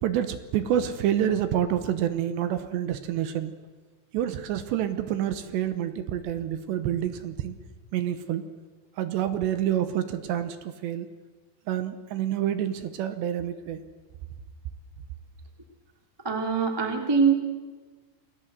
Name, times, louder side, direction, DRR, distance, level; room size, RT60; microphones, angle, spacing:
voice 1, 0.0-3.5 4.1-7.6 7.9-8.4 9.0-11.1 11.7-13.8, right 10 dB, 75° right, 10 dB, 3.0 m, -28 dB
voice 2, 16.2-17.3, right 5 dB, 15° right, 4 dB, 0.7 m, -23 dB
28.5 x 17.0 x 8.0 m, 1.3 s
omnidirectional pair, 5.5 m